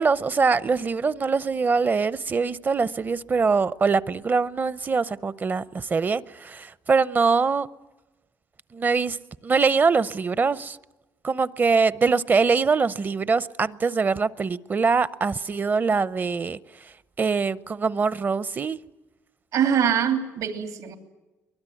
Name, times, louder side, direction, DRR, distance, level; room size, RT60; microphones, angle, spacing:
voice 1, 0.0-7.7 8.7-9.2 9.4-10.8 11.2-16.6 17.2-18.8, right 4 dB, 30° right, 0.7 m, -23 dB
voice 2, 19.5-21.0, right 8 dB, 75° right, 3.2 m, -23 dB
23.0 x 21.5 x 9.2 m
cardioid pair, 110°, 6 cm